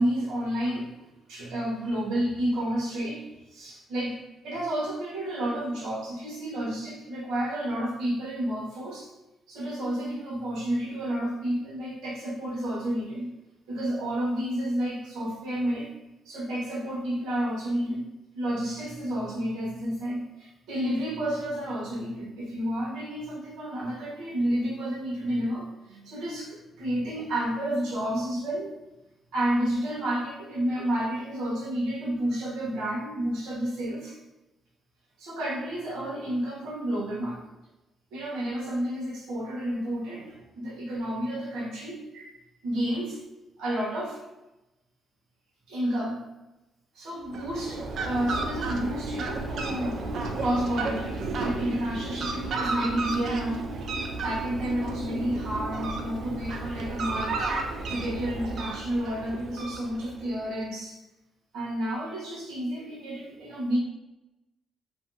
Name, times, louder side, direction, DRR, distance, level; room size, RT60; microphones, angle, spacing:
voice 1, 0.0-3.2 3.5-9.1 9.5-13.3 13.7-15.9 16.2-18.1 18.3-28.7 29.3-34.2 35.2-37.4 38.1-42.3 42.6-43.2 43.6-44.2 45.7-46.3 46.9-50.0 50.4-53.7 54.2-57.5 57.9-61.0 61.5-63.8, right 1 dB, 85° right, -5 dB, 0.9 m, -30 dB
Fowl, 47.2-60.3, right 3 dB, 65° right, 0.3 m, -33 dB
2.6 x 2.2 x 2.6 m, 0.98 s
cardioid pair, 90°, 0 cm